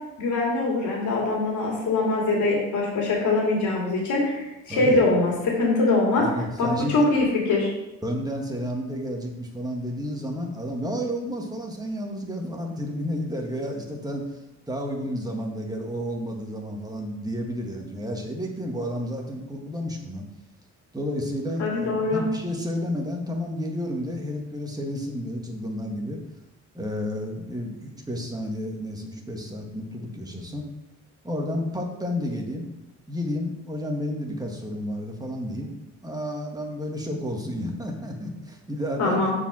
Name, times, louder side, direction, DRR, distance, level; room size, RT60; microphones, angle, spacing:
voice 1, 0.2-6.3 6.6-7.7 21.6-22.2 39.0-39.3, left 2 dB, 75° left, -3 dB, 2.5 m, -23 dB
voice 2, 4.7-5.0 6.2-7.0 8.0-14.4 14.7-20.2 20.9-26.2 26.7-30.7 31.2-32.7 33.1-35.7 36.0-39.3, equal, 10° right, 1 dB, 1.7 m, -31 dB
6.8 x 4.9 x 6.1 m, 0.97 s
cardioid pair, 90°, 30 cm